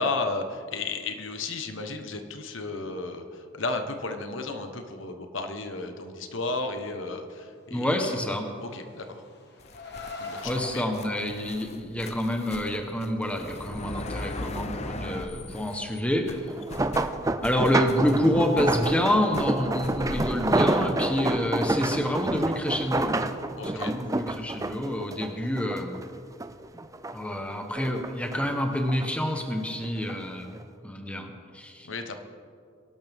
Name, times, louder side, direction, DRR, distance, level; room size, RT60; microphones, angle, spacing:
voice 1, 0.0-8.1 8.6-9.0 10.2-10.8 23.6-23.9 31.8-32.2, left 3 dB, 70° left, 6 dB, 1.2 m, -33 dB
voice 2, 7.7-8.5 10.4-16.5 17.4-23.2 23.6-26.0 27.1-30.6 30.8-31.9, left 1 dB, 5° left, 3 dB, 1.1 m, -28 dB
Car, 8.6-10.8, left 3 dB, 50° left, 1.5 m, -41 dB
sound 1, 9.6-16.0 16.3-20.4, left 2 dB, 30° left, 0.7 m, -39 dB
sound 2, 16.5-26.1 26.4-27.4 27.7-29.1 29.8-30.1 30.5-30.6, right 2 dB, 15° right, 0.5 m, -28 dB
23.0 x 12.0 x 3.6 m, 2.3 s
head